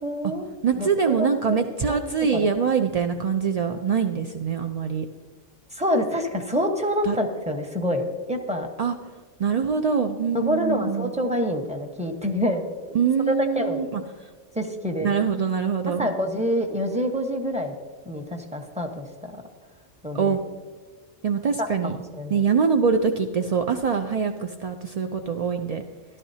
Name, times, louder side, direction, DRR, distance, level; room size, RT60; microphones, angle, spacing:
voice 1, 0.0-0.5 0.8-1.6 1.9-2.0 2.3-2.5 5.7-8.7 10.3-12.6 13.5-13.9 14.5-15.2 15.9-17.7 18.1-19.3 20.0-20.4 21.6-22.4, equal, 5° right, 3 dB, 1.0 m, -27 dB
voice 2, 0.6-5.0 7.0-7.2 8.8-8.9 9.4-11.1 12.9-14.0 15.0-16.1 20.1-20.4 21.2-22.0 22.3-25.8, right 6 dB, 60° right, 5 dB, 0.4 m, -24 dB
14.0 x 12.0 x 2.8 m, 1.4 s
omnidirectional pair, 1.3 m